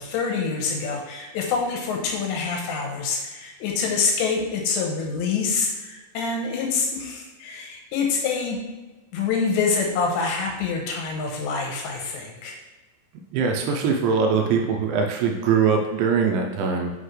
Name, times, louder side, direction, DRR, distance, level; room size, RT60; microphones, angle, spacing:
voice 1, 0.0-8.6 9.1-12.6, left 5 dB, 75° left, 1 dB, 2.9 m, -26 dB
voice 2, 13.3-16.9, right 5 dB, 85° right, 2 dB, 2.8 m, -22 dB
7.9 x 5.5 x 3.2 m, 1.2 s
omnidirectional pair, 5.5 m